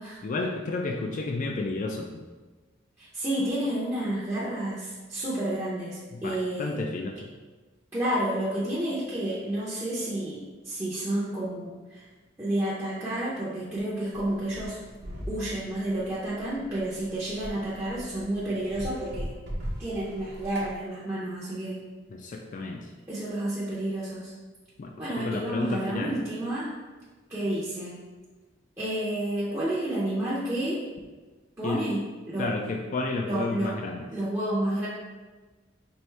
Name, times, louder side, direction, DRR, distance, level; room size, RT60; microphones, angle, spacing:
voice 1, 0.2-2.2 6.1-7.2 22.1-22.9 24.8-26.2 31.6-31.8 32.4-34.1, left 3 dB, 45° left, 2 dB, 0.3 m, -31 dB
voice 2, 3.0-6.7 7.9-10.4 10.6-12.0 12.4-14.8 15.3-19.3 19.8-21.8 23.1-24.3 25.0-26.7 27.3-28.0 28.8-30.8 31.6-32.0 32.3-32.5 33.2-33.8 34.1-34.9, right 1 dB, 15° right, -10 dB, 0.7 m, -30 dB
sound 1, 14.1-20.7, equal, 60° right, 0.9 m, -40 dB
4.5 x 2.6 x 3.2 m, 1.3 s
head